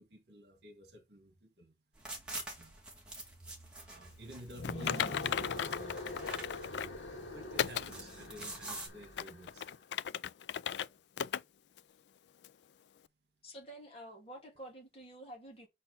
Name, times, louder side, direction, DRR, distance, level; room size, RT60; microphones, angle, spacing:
voice 1, 0.0-1.7 2.6-2.8 3.8-5.9 7.3-9.7, equal, 65° right, 1.7 m, -52 dB
sound 1, 1.9-8.9, right 2 dB, 5° right, 2.0 m, -47 dB
sound 2, 4.5-9.5, left 2 dB, 85° left, 2.1 m, -44 dB
Typing, 4.6-7.0 7.6-7.9 8.4-8.5 9.0-10.9 11.2-11.4 11.8-11.9 12.4-12.5, left 8 dB, 65° left, 0.3 m, -36 dB
voice 2, 13.4-15.7, right 1 dB, 30° left, 2.6 m, -49 dB
6.8 x 4.2 x 5.3 m
head